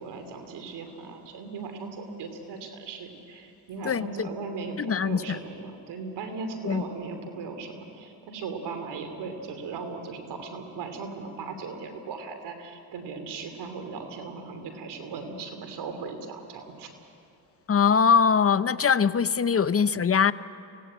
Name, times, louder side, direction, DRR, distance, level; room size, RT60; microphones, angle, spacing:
voice 1, 0.0-16.9, right 4 dB, 85° right, 6 dB, 3.0 m, -38 dB
voice 2, 3.8-4.3 4.8-5.4 6.6-6.8 17.7-20.3, left 6 dB, 35° left, 15 dB, 0.7 m, -22 dB
24.5 x 17.5 x 8.8 m, 2.7 s
cardioid pair, 65°, 39 cm